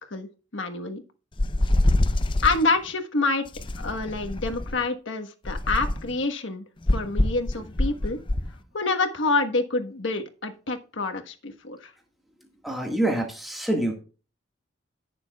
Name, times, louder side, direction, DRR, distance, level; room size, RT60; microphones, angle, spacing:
voice 1, 0.1-1.0 2.4-3.4 3.8-6.6 6.9-8.2 8.7-11.9, left 3 dB, 80° left, 6 dB, 1.3 m, -27 dB
sound 1, 1.4-2.6 3.5-4.8 5.4-6.1 6.9-8.5, left 1 dB, 25° left, 0.6 m, -24 dB
voice 2, 12.6-14.0, right 1 dB, ahead, 1 dB, 1.7 m, -26 dB
18.0 x 6.8 x 2.3 m, 0.35 s
head